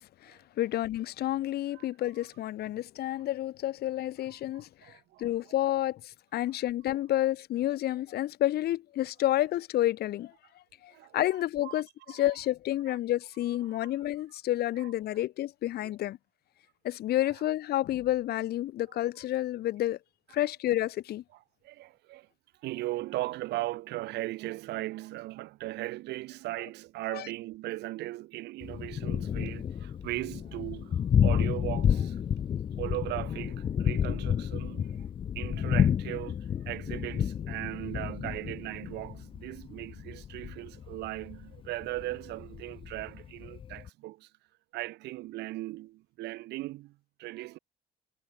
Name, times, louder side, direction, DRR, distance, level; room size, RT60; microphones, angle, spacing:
voice 1, 0.0-4.9 5.2-10.3 10.8-16.2 16.8-20.0 20.3-21.2 27.1-27.3, left 14 dB, 70° left, 3.0 m, -30 dB
voice 2, 4.5-5.3 10.9-11.2 11.6-11.8 12.1-12.2 12.9-13.0 13.7-13.9 14.8-14.9 21.3-22.3 22.6-32.2 32.8-35.1 35.3-44.3 44.7-47.6, right 18 dB, 85° right, 2.5 m, -38 dB
Thunder, 28.6-43.9, left 8 dB, 30° left, 0.4 m, -30 dB
cardioid pair, 110°, 17 cm